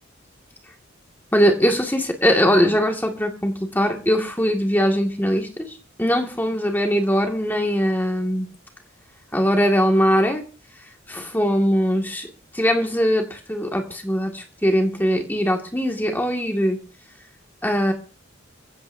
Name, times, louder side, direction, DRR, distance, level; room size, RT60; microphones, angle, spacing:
voice 1, 1.3-5.7 6.0-8.5 9.3-10.4 11.1-12.3 12.5-16.8 17.6-17.9, equal, 10° left, 2 dB, 2.1 m, -21 dB
23.0 x 16.0 x 2.7 m, 0.35 s
head